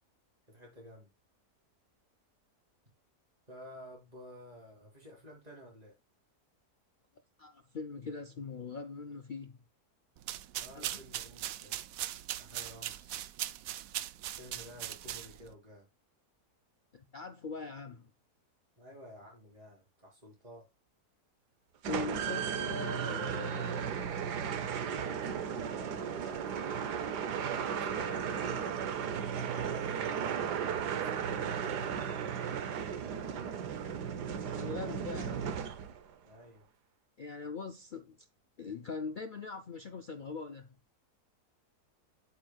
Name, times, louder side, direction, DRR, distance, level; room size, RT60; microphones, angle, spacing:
voice 1, 0.5-1.1 3.5-6.0 10.5-11.8 12.4-13.2 14.4-15.9 18.8-20.7 24.9-26.9 27.5-30.6 30.9-32.6 36.2-36.6, left 1 dB, 25° right, 4.3 m, -51 dB
voice 2, 7.4-9.6 10.7-10.9 16.9-18.1 21.9-24.0 34.6-35.6 37.2-38.3 38.6-40.8, left 4 dB, 80° left, 0.4 m, -41 dB
sound 1, 10.2-15.5, right 12 dB, 70° right, 0.9 m, -40 dB
sound 2, 21.8-36.1, right 7 dB, 90° right, 1.5 m, -35 dB
8.3 x 7.9 x 2.3 m
omnidirectional pair, 1.7 m